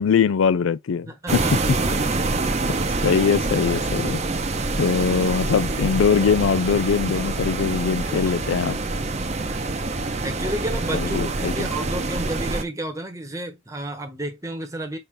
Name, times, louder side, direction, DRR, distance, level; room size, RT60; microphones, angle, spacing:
voice 1, 0.0-1.1 1.3-1.4 2.7-2.8 3.0-4.2 4.8-8.8 10.9-11.7, left 6 dB, 80° left, 0.4 m, -21 dB
voice 2, 1.1-1.5 2.1-2.2 8.1-8.4 9.0-9.8 10.2-15.0, right 1 dB, 15° right, 1.1 m, -32 dB
sound 1, 1.3-12.6, right 3 dB, 35° right, 0.7 m, -26 dB
5.5 x 2.7 x 3.2 m
head